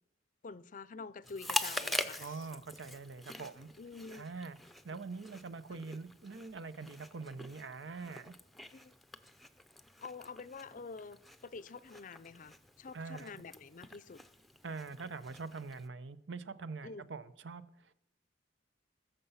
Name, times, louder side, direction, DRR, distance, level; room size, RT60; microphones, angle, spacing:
voice 1, 0.4-2.5 3.8-4.3 5.7-5.8 8.7-8.9 10.0-14.2 16.8-17.1, left 4 dB, 45° left, 0.5 m, -47 dB
Chewing mastication, 1.2-15.9, left 2 dB, ahead, 0.6 m, -44 dB
voice 2, 2.2-3.7 4.1-4.6 4.8-8.3 12.9-13.4 14.6-17.9, right 4 dB, 80° right, 0.7 m, -44 dB
20.5 x 6.9 x 5.6 m
head